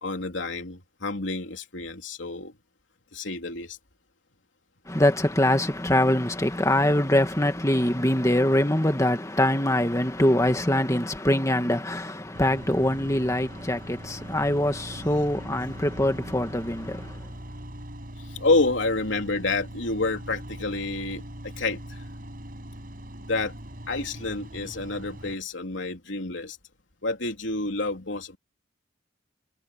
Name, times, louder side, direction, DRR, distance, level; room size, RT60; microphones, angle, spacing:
voice 1, 0.0-2.5 3.1-3.8 18.2-22.0 23.3-23.5 23.9-26.6 27.0-28.4, left 3 dB, 85° left, 3.3 m, -28 dB
voice 2, 4.9-17.2, left 1 dB, 15° left, 2.1 m, -23 dB
sound 1, 12.3-25.3, equal, 50° right, 5.9 m, -41 dB
head